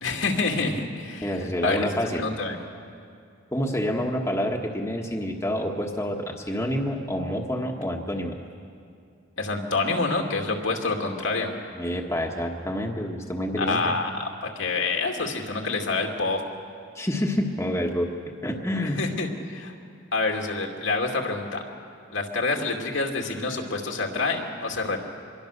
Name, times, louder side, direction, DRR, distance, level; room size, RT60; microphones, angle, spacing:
voice 1, 0.0-1.9 2.2-2.6 9.4-11.5 13.6-16.4 18.8-19.7 20.1-21.6 22.1-25.0, left 3 dB, 75° left, 1 dB, 2.5 m, -27 dB
voice 2, 1.2-2.3 3.5-8.4 11.7-13.9 16.9-18.1 18.4-19.0, equal, 15° left, 0 dB, 1.4 m, -28 dB
25.5 x 22.0 x 6.7 m, 2.4 s
head